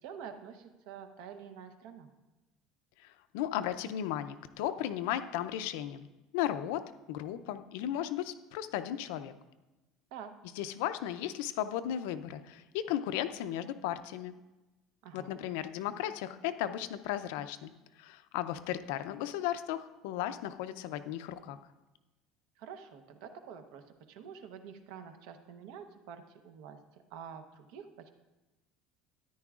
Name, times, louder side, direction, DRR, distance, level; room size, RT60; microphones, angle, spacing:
voice 1, 0.0-2.1 10.1-10.3 15.0-15.4 22.6-26.8 27.1-28.1, right 7 dB, 70° right, 8 dB, 0.8 m, -47 dB
voice 2, 3.0-6.1 6.3-6.8 7.1-9.3 10.6-14.3 15.1-17.7 18.0-21.6, left 11 dB, 80° left, 11 dB, 0.5 m, -35 dB
13.5 x 10.0 x 2.4 m, 1.1 s
cardioid pair, 170°, 0 cm